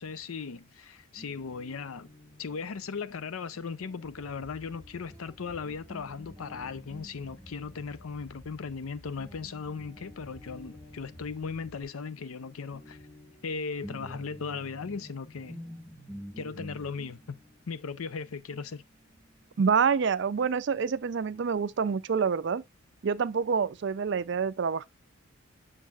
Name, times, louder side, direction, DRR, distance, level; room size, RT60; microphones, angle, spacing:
voice 1, 0.0-2.1 2.4-13.0 13.4-15.6 16.4-17.4 17.7-18.8, left 5 dB, 80° left, 0.5 m, -37 dB
Guitar, 1.2-8.9 9.2-19.6, equal, 5° left, 1.3 m, -50 dB
sound 1, 4.0-11.8, equal, 35° left, 1.6 m, -53 dB
voice 2, 19.6-22.6 23.0-24.8, right 6 dB, 55° right, 0.4 m, -27 dB
7.3 x 6.4 x 2.4 m
head